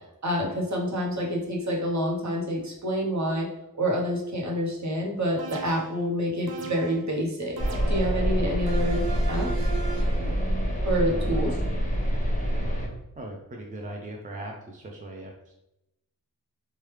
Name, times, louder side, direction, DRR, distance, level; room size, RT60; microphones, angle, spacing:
voice 1, 0.2-3.5 3.8-7.6 7.9-9.0 9.3-9.7 10.8-11.5, equal, 50° right, -2 dB, 0.9 m, -27 dB
sound 1, 5.4-6.0 6.5-7.1 7.6-8.2 8.7-10.3, right 5 dB, 85° right, 0.6 m, -38 dB
sound 2, 7.6-12.9, equal, 20° left, 0.8 m, -26 dB
voice 2, 11.1-11.6 13.2-15.5, right 1 dB, 25° right, 0 dB, 0.4 m, -39 dB
3.1 x 2.3 x 3.2 m, 0.88 s
wide cardioid pair, 80°, 36 cm